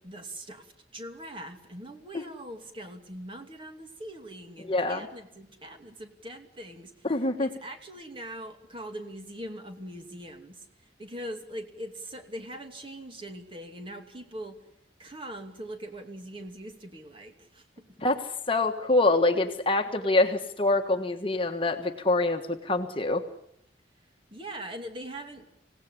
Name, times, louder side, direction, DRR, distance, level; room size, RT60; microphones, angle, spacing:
voice 1, 0.0-7.1 7.4-14.6 15.0-18.0 24.3-25.5, right 1 dB, 30° right, 5 dB, 2.7 m, -42 dB
voice 2, 4.7-5.1 7.0-7.5 18.0-23.2, left 2 dB, 30° left, 5 dB, 1.5 m, -25 dB
26.0 x 17.5 x 10.0 m, 0.78 s
head